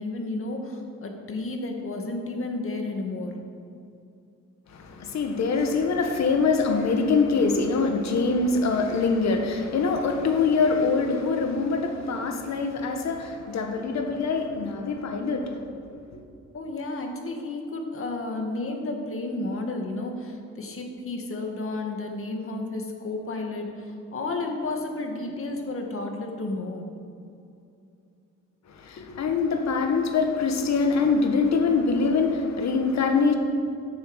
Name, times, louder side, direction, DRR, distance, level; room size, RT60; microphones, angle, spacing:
voice 1, 0.0-3.4 16.5-26.9, left 2 dB, 45° left, 3 dB, 2.0 m, -32 dB
voice 2, 4.7-15.6 28.8-33.3, left 4 dB, 60° left, 4 dB, 1.6 m, -24 dB
10.5 x 7.1 x 8.1 m, 2.6 s
cardioid pair, 90°, 30 cm